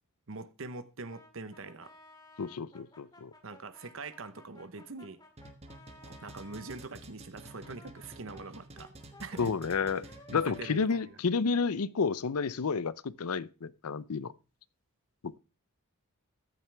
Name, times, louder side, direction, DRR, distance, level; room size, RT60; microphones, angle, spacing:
voice 1, 0.3-1.9 3.4-5.2 6.1-8.9 9.2-9.5 10.3-11.2, right 3 dB, 60° right, 0.9 m, -43 dB
Brass instrument, 1.0-6.8 7.4-12.2, left 2 dB, 20° left, 2.3 m, -56 dB
voice 2, 2.4-3.3 9.4-14.3 15.2-15.4, left 5 dB, 85° left, 0.6 m, -31 dB
sound 1, 5.4-10.9, right 1 dB, 30° right, 1.4 m, -50 dB
14.0 x 9.2 x 3.4 m
head